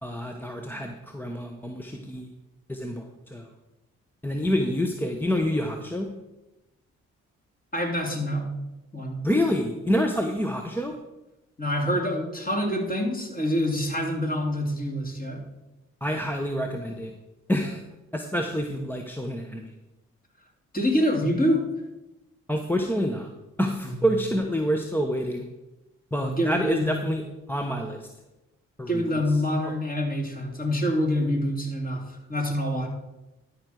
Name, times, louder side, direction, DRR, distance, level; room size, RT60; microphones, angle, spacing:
voice 1, 0.0-2.3 2.7-3.5 4.2-6.1 9.2-10.9 16.0-17.1 17.5-17.8 18.1-19.7 22.5-23.3 23.6-25.5 26.1-27.2 27.5-28.1 28.8-29.0 29.6-29.8, equal, 5° left, 2 dB, 1.0 m, -27 dB
voice 2, 7.7-8.4 8.9-9.2 11.6-15.4 20.7-21.6 23.8-24.1 26.2-27.0 28.9-32.9, equal, 25° left, 1 dB, 3.0 m, -26 dB
11.5 x 4.7 x 6.4 m, 0.99 s
supercardioid pair, 55°, 32 cm